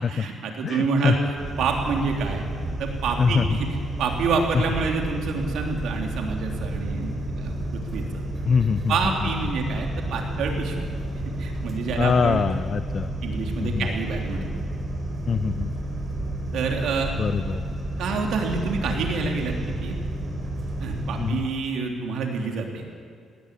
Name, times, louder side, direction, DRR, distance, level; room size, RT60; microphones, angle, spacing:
voice 1, 0.1-2.5 2.8-8.1 8.9-10.9 11.4-12.5 13.2-14.5 16.5-17.1 18.0-20.0 20.8-22.8, right 4 dB, 75° right, 2 dB, 3.6 m, -27 dB
voice 2, 0.6-1.2 3.2-3.6 8.5-9.1 12.0-13.1 13.6-13.9 15.3-15.7 17.2-17.6 21.2-21.5, left 5 dB, 40° left, 14 dB, 0.5 m, -23 dB
sound 1, 1.4-21.3, right 1 dB, 30° right, 4.1 m, -31 dB
20.0 x 17.5 x 8.7 m, 2.3 s
cardioid pair, 115°, 0 cm